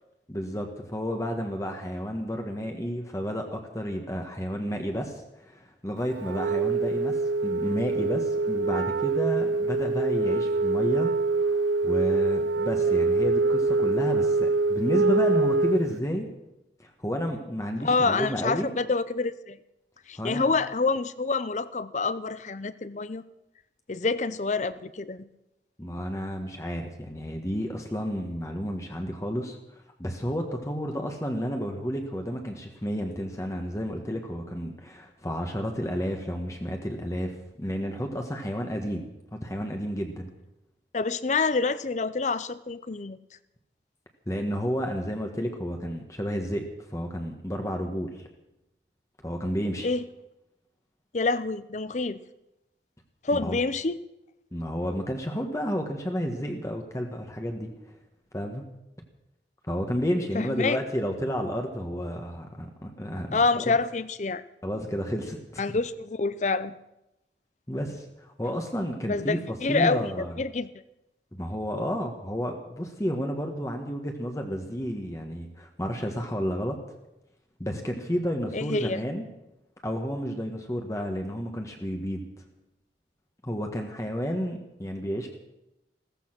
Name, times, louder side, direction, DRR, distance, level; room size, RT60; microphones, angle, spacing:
voice 1, 0.3-16.3 16.8-18.7 20.2-20.5 25.8-37.3 37.6-39.1 39.4-40.3 44.3-46.6 46.9-48.3 49.2-49.9 53.4-53.6 54.5-57.9 58.3-58.6 59.7-63.8 64.6-65.6 67.7-70.4 71.3-76.8 77.6-79.2 79.8-82.2 83.4-85.4, equal, 15° left, 3 dB, 1.3 m, -31 dB
Wind instrument woodwind instrument, 6.2-16.0, right 3 dB, 85° right, 0.6 m, -25 dB
voice 2, 17.8-19.6 20.1-23.2 23.9-25.3 40.9-43.2 49.8-50.0 51.1-52.2 53.2-54.0 60.3-60.8 63.3-64.4 65.6-66.7 69.1-70.7 78.5-79.0, left 3 dB, 40° left, 15 dB, 0.6 m, -27 dB
15.5 x 14.0 x 6.0 m, 0.90 s
head